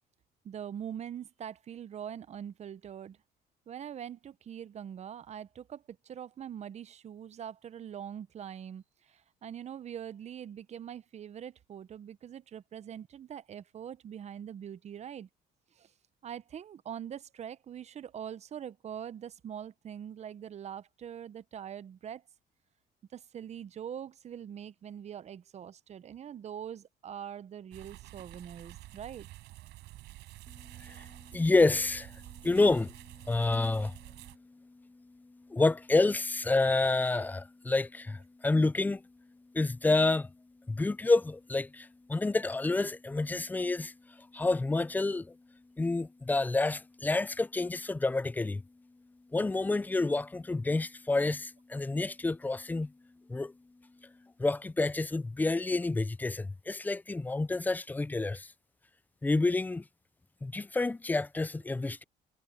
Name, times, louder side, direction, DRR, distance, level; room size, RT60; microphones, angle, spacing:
voice 1, 0.4-3.2 3.7-15.3 15.7-15.9 16.2-22.2 23.1-29.3, right 9 dB, 40° right, 0.8 m, -43 dB
sound 1, 27.7-34.4, right 17 dB, 85° right, 6.2 m, -49 dB
voice 2, 30.5-39.0 39.5-40.3 40.7-45.4 45.8-48.6 49.3-52.9 53.3-53.5 54.0-54.1 54.4-58.5 59.2-59.8 60.4-62.0, left 3 dB, 10° left, 0.4 m, -29 dB
cardioid pair, 110°, 17 cm